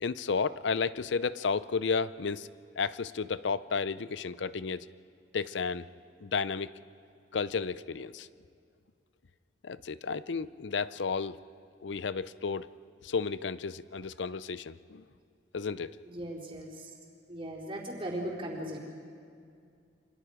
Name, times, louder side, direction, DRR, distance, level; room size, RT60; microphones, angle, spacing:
voice 1, 0.0-2.5 2.8-4.9 5.3-5.9 6.2-6.7 7.3-8.3 9.6-11.4 11.8-12.7 13.0-15.0 15.5-16.0, left 5 dB, 75° left, 16 dB, 0.6 m, -32 dB
voice 2, 16.0-16.9 17.3-18.8, right 1 dB, 30° right, -3 dB, 4.2 m, -38 dB
28.5 x 25.0 x 5.0 m, 2.3 s
head